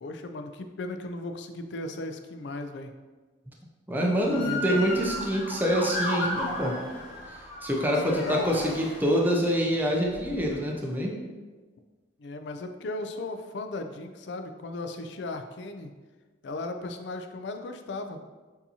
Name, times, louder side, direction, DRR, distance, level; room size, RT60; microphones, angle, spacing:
voice 1, 0.0-2.9 3.9-4.9 8.0-8.6 12.2-15.9 16.4-18.2, left 2 dB, 60° left, 7 dB, 0.4 m, -36 dB
voice 2, 3.9-6.8 7.6-11.2, equal, 10° right, -1 dB, 0.5 m, -26 dB
Motor vehicle (road) / Siren, 4.2-9.4 10.1-10.5, left 1 dB, 30° left, 1.5 m, -34 dB
6.8 x 2.8 x 2.8 m, 1.3 s
head